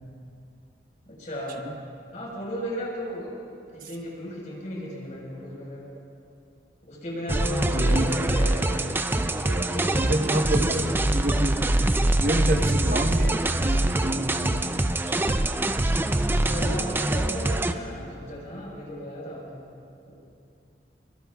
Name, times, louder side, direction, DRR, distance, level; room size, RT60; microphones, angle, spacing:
voice 1, 1.1-1.6 2.1-5.8 6.8-8.9 9.2-9.9 10.4-11.0 16.4-19.7 20.1-20.2, equal, 45° left, -4 dB, 4.6 m, -35 dB
sound 1, 7.3-17.7, right 1 dB, 10° right, 0.4 m, -24 dB
voice 2, 7.7-8.0 10.0-10.9 11.1-11.6 12.2-14.7 15.1-15.2, right 1 dB, 50° right, 3 dB, 1.2 m, -27 dB
23.0 x 22.0 x 2.3 m, 2.5 s
head